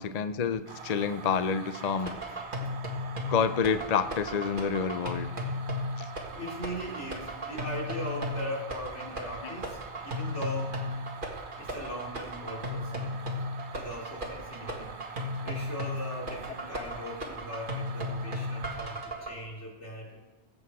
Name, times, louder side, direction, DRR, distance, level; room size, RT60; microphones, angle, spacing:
voice 1, 0.0-2.1 3.3-5.3 6.0-6.1 9.4-9.5, left 6 dB, 45° left, 11 dB, 0.6 m, -28 dB
sound 1, 0.7-19.0, right 5 dB, 70° right, 1.2 m, -45 dB
sound 2, 1.7-19.3, left 1 dB, 50° right, 2.1 m, -35 dB
voice 2, 6.3-10.8 11.6-13.2 13.7-15.0 15.4-20.2, equal, 85° left, -3 dB, 3.5 m, -39 dB
21.0 x 8.0 x 4.8 m, 1.1 s
omnidirectional pair, 1.1 m